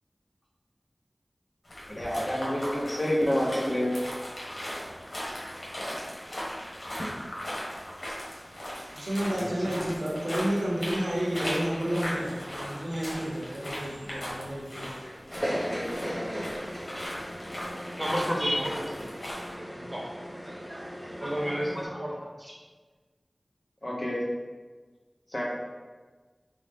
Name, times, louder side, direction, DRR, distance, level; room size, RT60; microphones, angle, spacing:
sound 1, 1.7-19.5, equal, 70° left, 1.3 m, -38 dB
voice 1, 1.9-3.9 9.4-9.5 15.5-16.4 23.8-24.2 25.3-25.4, equal, 40° left, -4 dB, 1.0 m, -29 dB
voice 2, 8.9-14.9, right 1 dB, 80° right, -4 dB, 1.0 m, -31 dB
sound 2, 15.3-21.8, equal, 5° left, 0.8 m, -37 dB
voice 3, 18.0-19.1 19.5-19.6 19.9-20.0 20.4-22.5, equal, 20° right, -3 dB, 1.1 m, -32 dB
5.3 x 2.4 x 3.6 m, 1.4 s
wide cardioid pair, 60°, 0 cm